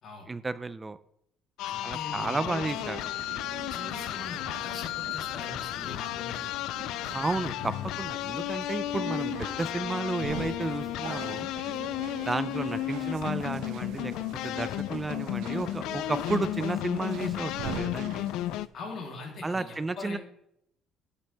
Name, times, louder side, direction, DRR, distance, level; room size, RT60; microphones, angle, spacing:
voice 1, 0.3-1.0 1.8-3.0 7.1-11.5 12.2-14.1 14.4-18.3 19.4-20.2, right 3 dB, 15° right, 13 dB, 0.5 m, -32 dB
sound 1, 1.6-18.7, left 15 dB, 70° left, 0.3 m, -33 dB
voice 2, 1.6-2.6 3.7-6.5 12.2-12.3 18.7-20.2, left 3 dB, 40° left, -1 dB, 3.3 m, -42 dB
sound 2, 2.6-18.7, right 8 dB, 80° right, 1.1 m, -43 dB
13.0 x 7.8 x 3.5 m, 0.71 s
cardioid pair, 165°, 0 cm